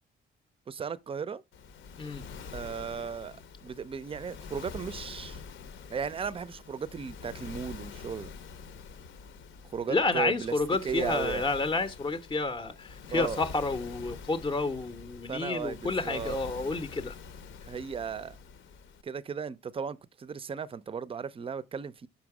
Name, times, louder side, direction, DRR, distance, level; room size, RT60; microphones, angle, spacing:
voice 1, 0.7-1.4 2.5-5.4 5.9-8.3 9.7-10.5 10.8-11.4 13.1-13.4 15.3-16.4 17.7-18.4 19.0-22.1, right 6 dB, 30° right, 0.4 m, -36 dB
Waves surf, 1.5-19.0, left 5 dB, 75° left, 0.8 m, -46 dB
voice 2, 9.9-17.1, left 3 dB, 20° left, 0.6 m, -30 dB
5.7 x 5.1 x 4.7 m
cardioid pair, 90°, 20 cm